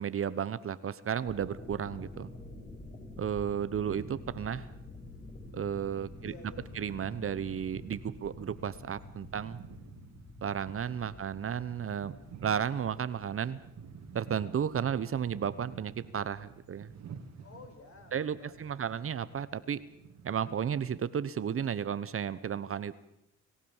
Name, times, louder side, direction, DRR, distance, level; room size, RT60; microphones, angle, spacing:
voice 1, 0.0-2.3 3.2-4.7 5.5-6.3 6.7-9.6 10.4-12.2 12.4-13.6 14.1-16.9 18.1-19.8 20.2-22.9, right 8 dB, 45° right, 15 dB, 1.1 m, -33 dB
sound 1, 1.2-20.8, left 2 dB, 25° left, 6.2 m, -50 dB
sound 2, 3.7-20.9, right 6 dB, 60° right, 2.5 m, -51 dB
voice 2, 6.2-6.9 9.2-9.4 17.4-19.0, left 3 dB, 45° left, 6 dB, 5.5 m, -54 dB
26.5 x 16.0 x 7.3 m, 0.82 s
cardioid pair, 90°, 30 cm